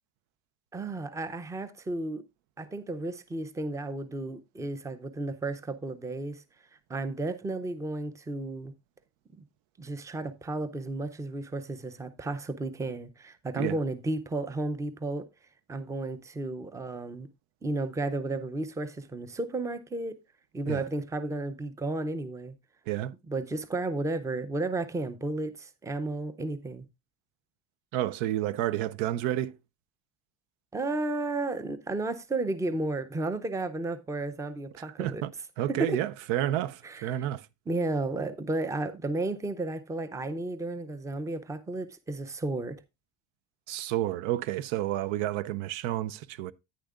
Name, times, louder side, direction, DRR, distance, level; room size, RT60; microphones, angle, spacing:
voice 1, 0.7-2.2 2.6-6.4 6.9-8.7 9.8-15.3 15.7-17.3 17.6-20.1 20.5-22.6 23.3-26.9 30.7-35.2 35.7-36.0 36.8-37.2 37.7-42.8, right 2 dB, 5° right, 0.5 m, -33 dB
voice 2, 27.9-29.6 34.8-35.3 35.6-37.5 43.7-46.5, right 13 dB, 90° right, 0.7 m, -30 dB
10.0 x 9.3 x 2.4 m
cardioid pair, 145°, 45 cm